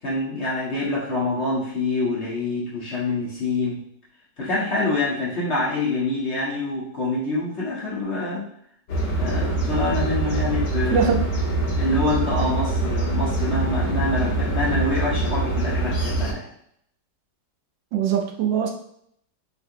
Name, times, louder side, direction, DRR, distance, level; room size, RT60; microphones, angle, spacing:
voice 1, 0.0-3.8 4.4-8.5 9.2-11.0 11.8-16.5, left 2 dB, 50° left, -7 dB, 0.9 m, -26 dB
sound 1, 8.9-16.3, right 2 dB, 85° left, 1.8 m, -24 dB
voice 2, 10.9-11.2 17.9-18.7, right 7 dB, 85° right, 3 dB, 1.3 m, -21 dB
4.0 x 2.6 x 2.6 m, 0.71 s
omnidirectional pair, 2.0 m